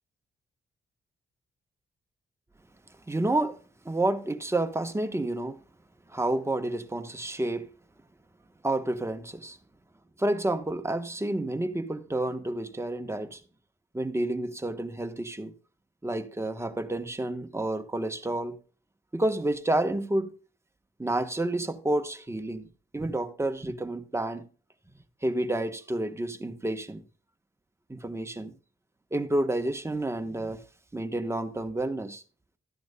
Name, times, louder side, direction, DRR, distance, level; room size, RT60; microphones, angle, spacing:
voice 1, 3.1-3.6 3.8-5.6 6.1-7.7 8.6-9.6 10.2-13.4 13.9-15.5 16.0-18.6 19.1-20.3 21.0-24.5 25.2-27.0 27.9-28.5 29.1-30.6 30.9-32.2, right 1 dB, 15° right, 1.0 m, -30 dB
13.5 x 10.5 x 2.2 m
cardioid pair, 75°, 20 cm